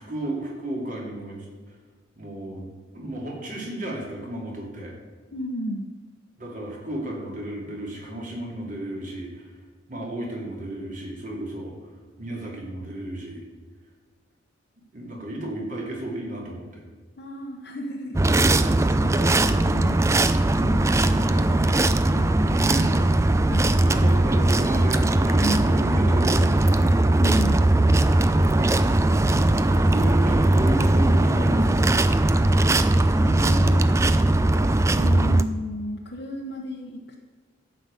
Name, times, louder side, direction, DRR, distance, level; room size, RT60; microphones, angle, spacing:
voice 1, 0.0-1.5 2.2-4.9 6.4-9.5 9.9-11.8 12.2-13.4 14.9-16.8 22.6-22.9 23.8-26.9 29.8-32.0, right 1 dB, 40° right, -2 dB, 2.8 m, -33 dB
voice 2, 5.3-5.9 17.2-20.1 20.6-22.9 23.5-24.6 25.4-25.7 27.2-27.7 33.2-33.9 35.0-37.3, equal, 55° left, -1 dB, 1.0 m, -34 dB
sound 1, 18.1-35.4, right 2 dB, 15° right, 0.3 m, -19 dB
12.0 x 5.7 x 8.2 m, 1.5 s
head